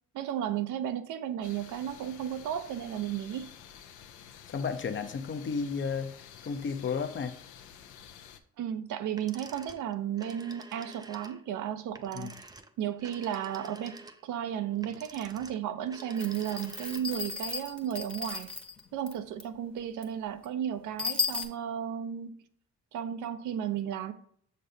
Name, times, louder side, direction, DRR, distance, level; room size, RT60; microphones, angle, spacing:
voice 1, 0.1-3.5 8.6-12.3 12.8-18.5 18.9-22.4 22.9-24.1, right 10 dB, 80° right, 0.6 m, -34 dB
sound 1, 1.4-8.4, left 9 dB, 80° left, 0.6 m, -51 dB
voice 2, 4.5-6.1 6.4-7.4 12.1-12.3, left 5 dB, 40° left, 0.6 m, -32 dB
sound 2, 9.2-17.3, right 2 dB, 15° right, 0.5 m, -49 dB
sound 3, 16.2-18.8 19.1-19.2 19.4-19.5 20.0-20.1 20.4-20.5 21.0-21.4, left 4 dB, 5° left, 0.8 m, -34 dB
6.6 x 5.3 x 2.7 m
cardioid pair, 90°, 30 cm